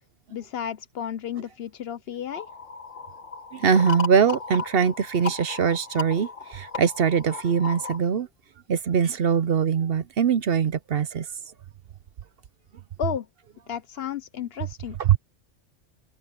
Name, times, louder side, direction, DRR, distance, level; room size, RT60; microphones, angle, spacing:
voice 1, 0.3-2.5 13.0-13.3 13.7-15.0, left 9 dB, 60° left, 0.8 m, -32 dB
sound 1, 2.3-8.0, left 5 dB, 80° left, 1.9 m, -36 dB
voice 2, 3.5-8.3 8.7-11.3 15.0-15.2, right 7 dB, 55° right, 0.8 m, -22 dB
omnidirectional pair, 1.3 m